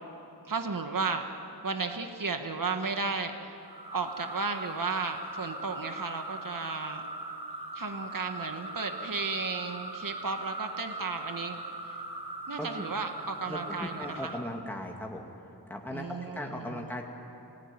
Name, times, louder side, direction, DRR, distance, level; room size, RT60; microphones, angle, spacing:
voice 1, 0.4-1.3 1.6-3.6 3.9-7.0 7.7-11.6 12.5-14.3 15.9-16.9, right 4 dB, 55° right, 6 dB, 1.6 m, -34 dB
sound 1, 3.6-14.5, right 2 dB, 70° right, 4.7 m, -40 dB
voice 2, 13.5-15.3 15.7-17.0, left 1 dB, 5° left, 1 dB, 2.2 m, -38 dB
27.5 x 19.0 x 9.7 m, 2.9 s
wide cardioid pair, 80°, 40 cm